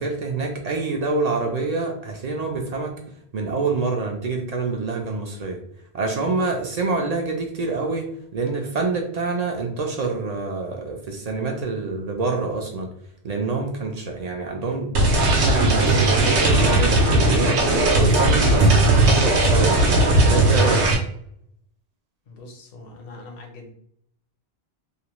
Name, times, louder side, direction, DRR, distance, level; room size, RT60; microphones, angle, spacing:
voice 1, 0.0-2.9 3.3-5.6 5.9-12.9 13.2-17.6 18.0-20.0 20.2-20.8, right 3 dB, 55° right, 1 dB, 0.5 m, -26 dB
sound 1, 15.0-21.0, right 2 dB, 90° right, 1.0 m, -17 dB
voice 2, 22.3-23.7, left 2 dB, 65° left, 1 dB, 0.9 m, -42 dB
2.5 x 2.1 x 2.9 m, 0.68 s
omnidirectional pair, 1.1 m